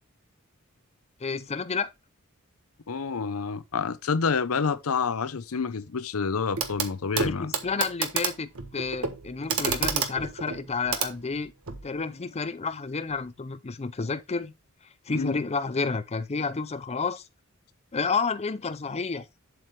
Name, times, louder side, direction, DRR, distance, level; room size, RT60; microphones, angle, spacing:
voice 1, 1.2-1.9 7.2-11.5 11.8-14.5 15.1-17.2 17.9-19.3, left 4 dB, 30° left, 0.5 m, -30 dB
voice 2, 2.9-7.5 15.1-15.4, left 5 dB, 80° left, 0.7 m, -28 dB
Clock, 6.6-6.9 7.2-11.9 13.1-13.2, right 6 dB, 75° right, 1.4 m, -30 dB
7.7 x 7.6 x 3.2 m
head